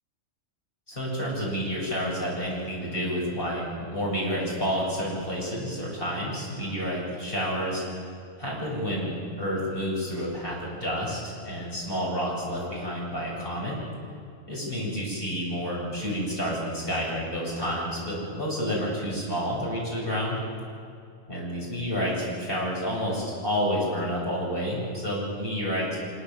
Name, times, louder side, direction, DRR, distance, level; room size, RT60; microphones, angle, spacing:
voice 1, 0.9-7.8 8.4-13.9 14.5-20.4 21.3-26.0, equal, 45° left, -4 dB, 8.4 m, -29 dB
25.0 x 23.5 x 7.4 m, 2.4 s
omnidirectional pair, 1.3 m